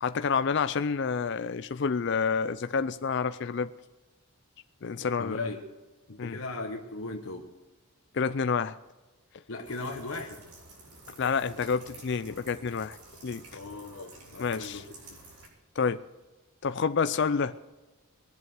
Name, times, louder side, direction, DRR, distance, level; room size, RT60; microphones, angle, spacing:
voice 1, 0.0-3.7 4.8-5.4 6.2-6.4 8.1-8.7 11.2-13.0 13.2-13.4 14.4-14.8 15.8-16.0 16.6-17.6, left 5 dB, 50° left, 11 dB, 0.4 m, -28 dB
voice 2, 5.2-5.6 6.1-7.5 9.5-10.4 13.5-15.2, left 3 dB, 70° left, 1 dB, 1.3 m, -37 dB
sound 1, 9.6-15.5, right 2 dB, 90° right, 5.1 m, -51 dB
20.5 x 7.8 x 6.7 m, 1.2 s
head